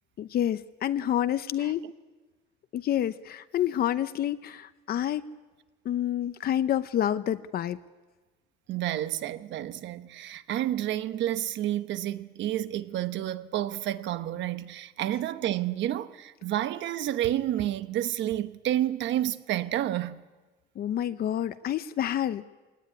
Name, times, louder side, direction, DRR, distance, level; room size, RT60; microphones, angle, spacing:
voice 1, 0.2-1.8 2.7-5.3 5.8-7.8 20.8-22.5, left 11 dB, 55° left, 0.8 m, -28 dB
voice 2, 8.7-20.2, right 12 dB, 85° right, 1.1 m, -30 dB
23.5 x 18.0 x 9.7 m
cardioid pair, 175°, 19 cm